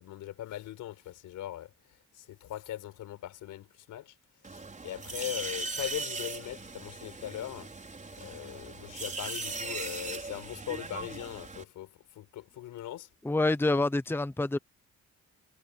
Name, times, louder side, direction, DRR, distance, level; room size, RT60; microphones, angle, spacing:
voice 1, 0.0-1.7 2.1-4.2 4.5-7.7 8.2-13.1, left 13 dB, 85° left, 4.6 m, -40 dB
sound 1, 4.4-11.6, right 3 dB, 25° right, 5.4 m, -39 dB
voice 2, 13.2-14.6, left 2 dB, 5° left, 0.9 m, -27 dB
cardioid pair, 90°, 30 cm